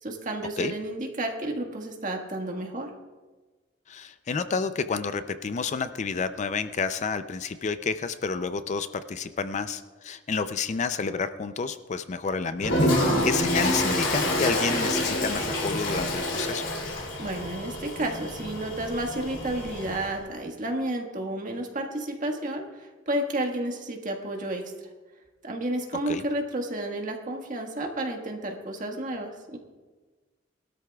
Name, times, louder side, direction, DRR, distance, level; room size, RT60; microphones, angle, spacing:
voice 1, 0.0-2.9 17.2-24.6 25.4-29.6, right 1 dB, 45° right, 2 dB, 1.6 m, -31 dB
voice 2, 3.9-16.6 26.1-26.2, left 5 dB, 40° left, 11 dB, 0.4 m, -30 dB
Toilet flush, 12.6-20.1, left 1 dB, 75° left, 3.2 m, -27 dB
20.0 x 13.0 x 2.3 m, 1.3 s
head